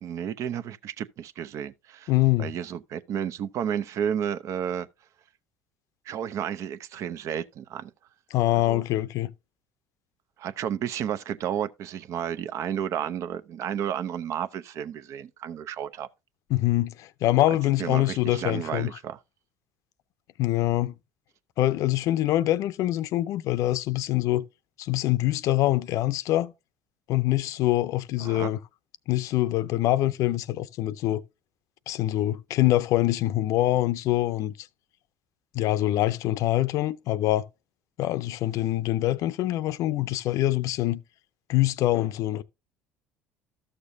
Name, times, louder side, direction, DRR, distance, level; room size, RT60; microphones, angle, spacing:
voice 1, 0.0-2.1 2.4-4.9 6.1-7.9 8.5-8.8 10.4-16.1 17.8-19.2 28.2-28.5, right 9 dB, 55° right, 0.6 m, -32 dB
voice 2, 2.1-2.5 8.3-9.3 16.5-18.9 20.4-20.9 21.6-24.5 24.8-26.5 27.1-28.6 29.1-31.2 31.9-34.5 35.5-37.5 38.0-41.0 41.5-42.4, left 15 dB, 65° left, 0.6 m, -24 dB
13.0 x 6.6 x 2.7 m
supercardioid pair, 85°, 6 cm